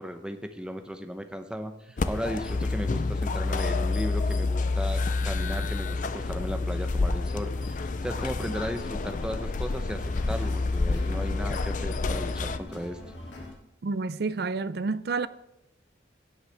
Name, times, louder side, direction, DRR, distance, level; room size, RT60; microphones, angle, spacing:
voice 1, 0.0-13.0, equal, 5° right, 0.8 m, -36 dB
sound 1, 2.0-12.6, left 3 dB, 45° left, 0.5 m, -28 dB
sound 2, 7.4-13.5, left 1 dB, 80° left, 2.6 m, -44 dB
voice 2, 13.8-15.3, right 4 dB, 60° right, 0.5 m, -29 dB
16.5 x 8.1 x 3.4 m
head